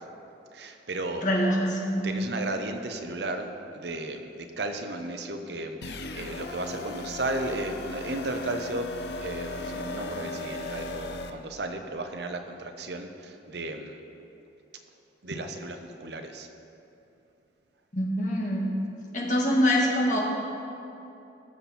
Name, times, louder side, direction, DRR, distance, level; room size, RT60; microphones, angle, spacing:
voice 1, 0.5-1.3 2.0-14.0 15.2-16.5, right 2 dB, 65° right, 6 dB, 0.9 m, -34 dB
voice 2, 1.2-2.3 17.9-18.7 19.1-20.2, equal, 45° left, -2 dB, 1.9 m, -25 dB
sound 1, 5.8-11.3, left 3 dB, 60° left, 0.7 m, -37 dB
19.5 x 7.2 x 4.3 m, 2.8 s
head